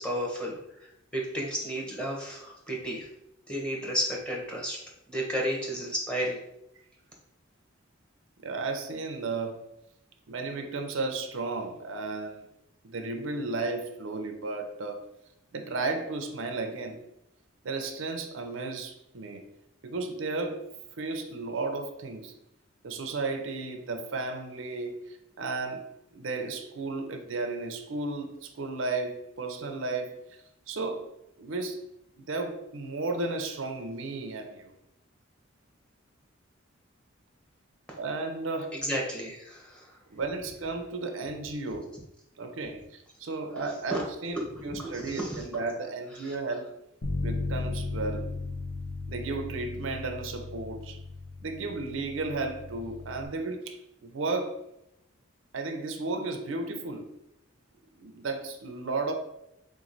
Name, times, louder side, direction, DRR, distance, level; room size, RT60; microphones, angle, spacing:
voice 1, 0.0-3.1 3.5-4.8 5.1-6.4 38.7-39.9 43.9-44.0 44.5-45.4 46.2-46.3, equal, 5° left, -2 dB, 0.9 m, -33 dB
voice 2, 8.4-9.6 10.3-12.5 12.8-15.0 15.5-17.0 17.6-19.5 19.8-20.6 21.0-22.3 22.8-25.9 26.1-31.1 31.4-31.8 32.2-34.7 38.0-38.8 40.1-41.9 42.4-46.7 47.2-48.3 49.1-51.0 51.4-54.6 55.5-57.1 58.0-59.1, right 3 dB, 70° right, 5 dB, 0.5 m, -34 dB
Bass guitar, 47.0-53.3, left 3 dB, 75° left, 0.8 m, -36 dB
3.8 x 3.0 x 3.9 m, 0.84 s
head